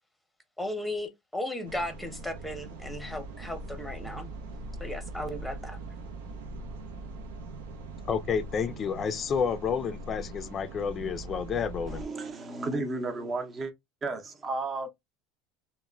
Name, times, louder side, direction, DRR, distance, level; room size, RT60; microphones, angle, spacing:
voice 1, 0.6-4.3 4.8-5.8, left 1 dB, 5° left, 0.8 m, -36 dB
sound 1, 1.6-12.1, right 2 dB, 85° right, 0.5 m, -41 dB
voice 2, 8.1-12.1, left 6 dB, 35° left, 0.4 m, -30 dB
voice 3, 11.9-13.7 14.0-14.9, right 3 dB, 30° right, 0.6 m, -33 dB
2.9 x 2.1 x 2.3 m
supercardioid pair, 105°, 0 cm